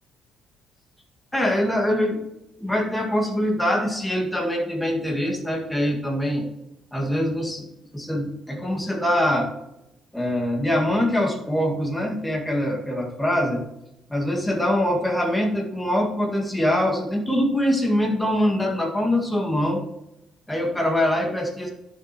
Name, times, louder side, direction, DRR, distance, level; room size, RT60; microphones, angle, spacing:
voice 1, 1.3-2.2 2.6-6.5 6.9-7.7 7.9-9.5 10.1-13.6 14.1-19.8 20.5-21.7, left 1 dB, 5° left, 1 dB, 1.9 m, -23 dB
11.0 x 7.2 x 3.0 m, 0.89 s
cardioid pair, 130°, 0 cm